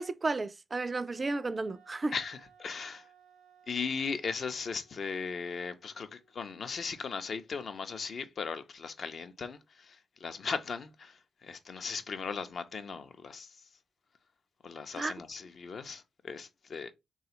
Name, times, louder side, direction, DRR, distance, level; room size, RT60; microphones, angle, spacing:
voice 1, 0.0-2.1 15.0-15.1, right 3 dB, 35° right, 0.3 m, -33 dB
Wind instrument woodwind instrument, 1.0-6.4, right 6 dB, 85° right, 0.5 m, -62 dB
voice 2, 2.1-3.1 3.7-13.6 14.6-16.9, left 5 dB, 55° left, 0.5 m, -38 dB
3.3 x 2.3 x 2.9 m
hypercardioid pair, 40°, 0 cm